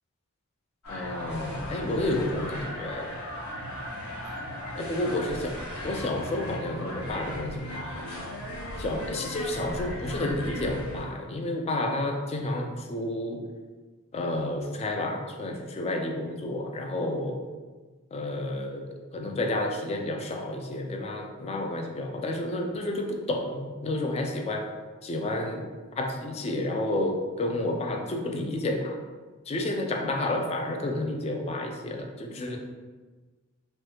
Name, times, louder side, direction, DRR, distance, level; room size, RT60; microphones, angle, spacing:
sound 1, 0.8-11.0, equal, 75° left, 0.9 m, -37 dB
voice 1, 0.9-3.1 4.8-8.1 8.8-13.4 14.1-17.4 18.1-24.7 25.0-25.7 25.9-29.0 29.5-32.6, left 1 dB, 30° left, 3 dB, 0.3 m, -30 dB
3.0 x 2.2 x 3.2 m, 1.3 s
head